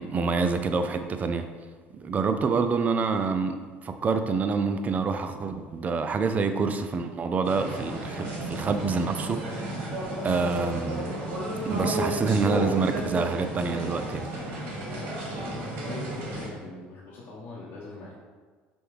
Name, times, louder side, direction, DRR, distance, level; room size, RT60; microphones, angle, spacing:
voice 1, 0.0-1.5 1.9-9.8 10.2-11.1 11.7-14.3, right 4 dB, 35° right, 8 dB, 0.4 m, -27 dB
sound 1, 7.4-16.5, right 1 dB, 60° right, 1.5 m, -32 dB
voice 2, 15.8-18.1, left 3 dB, 55° left, -7 dB, 0.8 m, -41 dB
5.1 x 2.3 x 3.1 m, 1.4 s
supercardioid pair, 85°, 5 cm